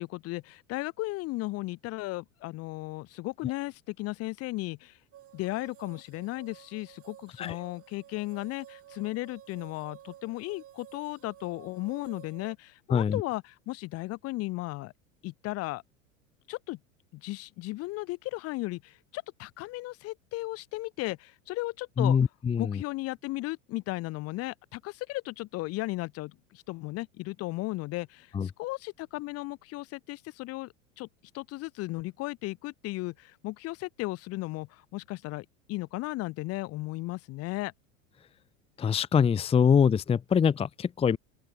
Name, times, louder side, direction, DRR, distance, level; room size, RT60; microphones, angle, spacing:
voice 1, 0.0-5.0 5.3-14.9 15.2-15.8 16.5-16.8 17.1-22.2 22.6-31.1 31.3-37.7, left 20 dB, 40° left, 1.1 m, -35 dB
sound 1, 5.1-12.5, right 12 dB, 35° right, 7.1 m, -52 dB
voice 2, 22.0-22.8 28.3-28.5 38.8-41.2, left 7 dB, 15° left, 0.8 m, -24 dB
open air
figure-of-eight pair, 85°, 39 cm